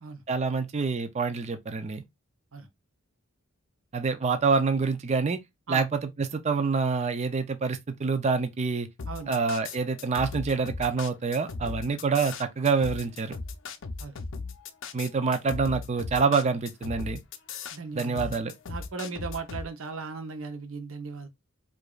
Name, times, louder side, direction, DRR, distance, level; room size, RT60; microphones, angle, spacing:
voice 1, 0.3-2.0 3.9-5.4 5.7-8.9 9.3-13.4 14.9-17.2 18.0-18.5, right 4 dB, 30° right, 0.4 m, -26 dB
sound 1, 9.0-19.7, left 4 dB, 65° left, 0.5 m, -37 dB
voice 2, 9.0-9.4 11.9-12.0 14.0-14.2 17.7-18.4 18.7-21.3, right 4 dB, 70° right, 0.8 m, -37 dB
4.8 x 2.5 x 2.3 m
head